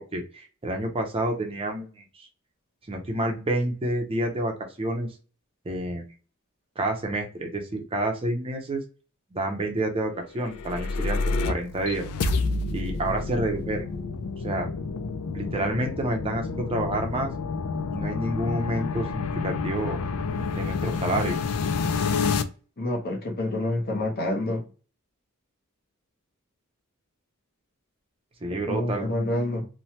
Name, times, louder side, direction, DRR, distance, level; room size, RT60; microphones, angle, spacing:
voice 1, 0.1-2.3 2.9-5.1 5.7-6.0 6.8-8.8 9.3-11.2 11.4-12.0 12.7-13.8 14.4-14.7 15.3-17.3 17.9-20.0 20.6-21.4 28.4-29.1, right 1 dB, 25° right, 0.5 m, -29 dB
sound 1, 10.4-22.4, left 4 dB, 90° left, 0.4 m, -29 dB
voice 2, 22.8-24.6 28.7-29.7, left 1 dB, 45° left, 0.8 m, -27 dB
3.1 x 2.1 x 2.7 m
head